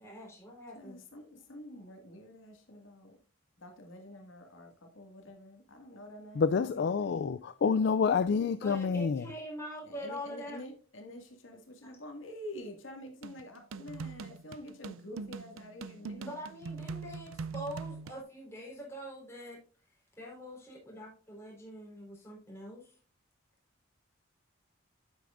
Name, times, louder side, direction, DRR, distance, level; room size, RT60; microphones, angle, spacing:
voice 1, 0.0-1.0 8.6-10.6 11.8-11.9 16.2-19.6 20.2-22.9, equal, 15° left, 4.0 m, -44 dB
voice 2, 0.7-3.2 3.6-7.3 7.8-7.9 9.8-16.4, left 1 dB, 75° left, 2.1 m, -48 dB
voice 3, 6.3-9.3, left 5 dB, 55° left, 0.3 m, -28 dB
sound 1, 13.2-18.2, right 4 dB, 85° right, 0.5 m, -42 dB
9.1 x 8.5 x 2.5 m
head